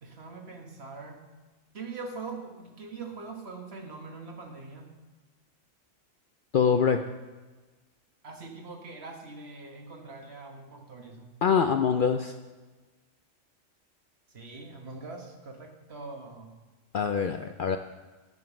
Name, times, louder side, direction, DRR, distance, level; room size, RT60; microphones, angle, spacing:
voice 1, 0.0-1.2 1.7-4.9 8.2-11.3 14.3-16.5, right 3 dB, 60° right, 2 dB, 1.7 m, -42 dB
voice 2, 6.5-7.0 11.4-12.3 16.9-17.8, left 6 dB, 60° left, 7 dB, 0.6 m, -24 dB
10.5 x 7.2 x 6.0 m, 1.3 s
omnidirectional pair, 1.3 m